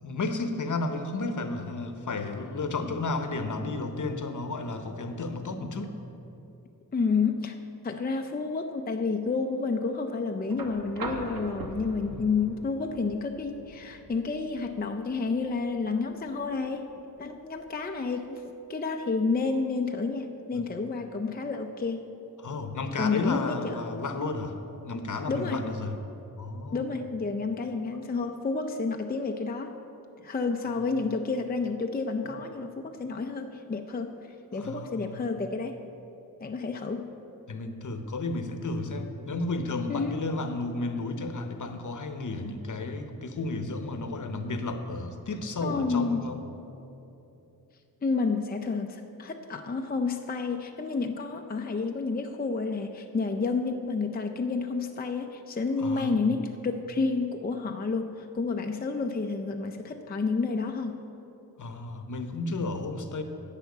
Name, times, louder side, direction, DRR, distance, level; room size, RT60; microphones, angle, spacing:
voice 1, 0.0-5.9 12.1-12.2 20.5-20.6 22.4-24.6 24.8-26.0 26.4-26.8 30.7-30.8 34.6-35.2 37.5-46.4 55.8-56.2 61.6-63.2, left 3 dB, 55° left, 7 dB, 0.9 m, -33 dB
voice 2, 6.9-7.6 7.8-16.9 17.2-22.1 23.0-23.8 25.3-25.6 26.7-29.7 30.2-34.1 34.5-35.8 36.4-37.1 39.9-40.2 45.6-46.2 48.0-61.0, left 4 dB, 25° left, 5 dB, 0.5 m, -30 dB
sound 1, 10.5-18.5 20.0-20.1, right 2 dB, 70° right, 1.0 m, -43 dB
10.5 x 5.7 x 8.3 m, 3.0 s
wide cardioid pair, 110°, 36 cm